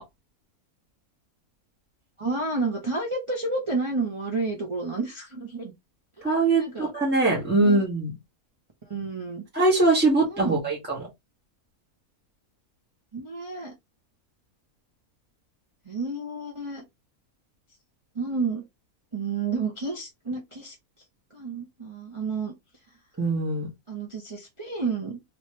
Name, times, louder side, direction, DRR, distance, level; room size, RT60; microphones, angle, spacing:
voice 1, 2.2-5.7 6.6-6.9 7.6-7.8 8.9-9.4 10.2-10.6 13.1-13.7 15.9-16.9 18.1-18.6 19.1-20.7 21.3-22.5 23.9-25.2, right 3 dB, 30° right, 0.6 m, -30 dB
voice 2, 6.2-8.1 9.5-11.1 23.2-23.7, right 2 dB, 5° right, 1.3 m, -22 dB
3.1 x 3.1 x 3.1 m
omnidirectional pair, 1.6 m